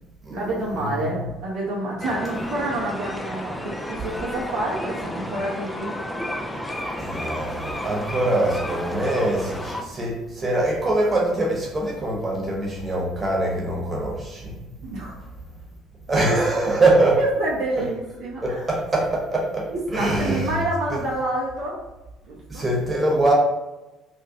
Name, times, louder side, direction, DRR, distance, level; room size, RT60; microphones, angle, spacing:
voice 1, 0.3-5.9 14.8-15.2 16.2-16.4 16.6-18.7 19.7-21.8 22.3-22.6, right 1 dB, 60° right, -5 dB, 0.6 m, -28 dB
sound 1, 2.0-9.8, left 1 dB, 10° left, 0.4 m, -32 dB
voice 2, 7.0-14.5 16.1-17.1 18.4-20.5 20.9-21.0 22.5-23.3, right 2 dB, 25° right, -3 dB, 1.1 m, -23 dB
2.9 x 2.5 x 2.7 m, 1.0 s
hypercardioid pair, 55°, 0 cm